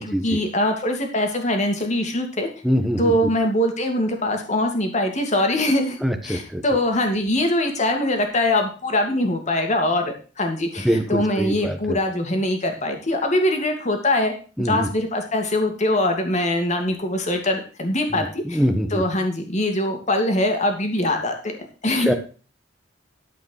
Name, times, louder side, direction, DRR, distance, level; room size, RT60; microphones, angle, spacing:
voice 1, 0.0-2.5 3.0-6.0 6.2-14.3 14.6-18.6 18.9-21.6 21.8-22.1, left 1 dB, 40° left, 4 dB, 2.3 m, -22 dB
voice 2, 2.6-3.3 6.0-6.6 10.8-12.0 14.6-14.9 18.1-19.0 21.9-22.1, equal, ahead, 6 dB, 1.3 m, -23 dB
13.0 x 5.1 x 6.4 m, 0.37 s
head